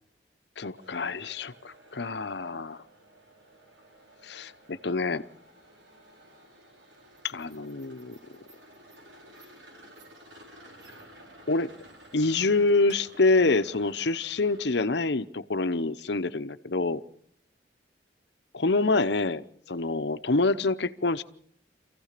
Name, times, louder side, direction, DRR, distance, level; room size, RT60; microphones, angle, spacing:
voice 1, 0.6-2.8 4.2-5.2 7.2-8.2 11.5-11.7 12.1-17.0 18.5-21.2, left 3 dB, 65° left, 12 dB, 0.9 m, -26 dB
sound 1, 0.8-15.1, right 1 dB, 75° right, 4.7 m, -53 dB
27.0 x 15.5 x 6.7 m, 0.65 s
head